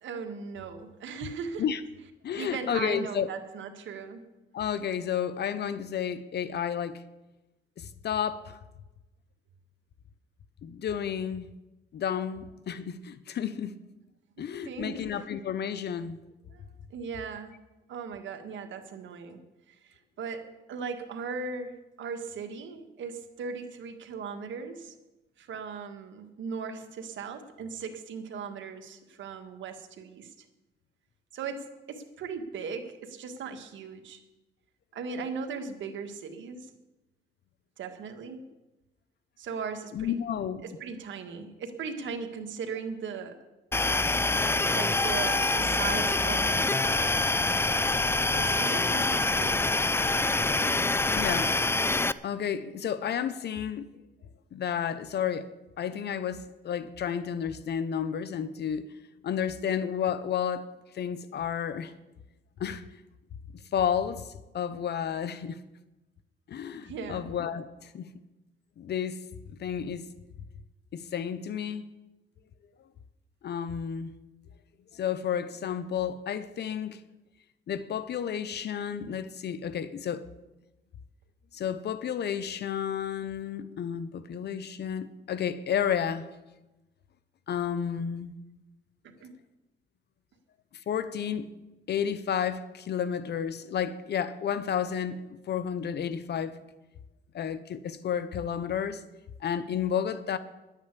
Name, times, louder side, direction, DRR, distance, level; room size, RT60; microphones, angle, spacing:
voice 1, 0.0-1.6 2.4-4.2 14.4-15.1 16.5-16.6 16.9-17.6 17.9-19.4 19.7-24.9 25.4-30.4 31.3-34.2 34.9-36.7 37.8-38.4 39.4-40.2 40.6-43.4 44.7-47.1 48.3-49.7 66.8-67.2 89.0-89.3, right 5 dB, 70° right, 1.7 m, -38 dB
voice 2, 2.2-3.3 4.5-7.0 7.8-8.6 10.6-11.5 11.9-13.8 14.4-16.2 39.9-40.6 51.2-51.6 52.2-53.9 54.5-55.5 55.8-59.0 59.2-61.9 62.6-62.8 63.7-65.6 66.5-68.1 68.8-69.2 69.6-70.1 70.9-71.8 73.4-74.1 74.9-77.0 77.7-80.2 81.5-86.3 87.5-88.3 90.9-91.5 91.9-96.6 97.3-99.0 99.4-100.4, left 8 dB, 60° left, 0.7 m, -31 dB
sound 1, 43.7-52.1, left 3 dB, 10° left, 0.4 m, -25 dB
10.5 x 9.1 x 8.3 m
cardioid pair, 90°, 20 cm